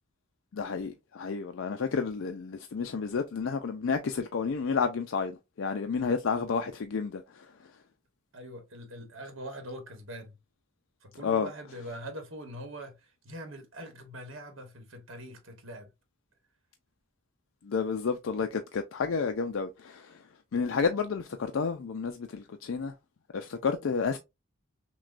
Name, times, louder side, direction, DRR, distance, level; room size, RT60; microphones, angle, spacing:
voice 1, 0.5-7.7 11.2-11.5 17.6-20.3 20.5-22.9 23.3-24.2, left 5 dB, 80° left, 0.4 m, -31 dB
voice 2, 8.3-10.4 11.0-15.9, equal, 85° right, 1.2 m, -43 dB
6.0 x 2.2 x 2.5 m
head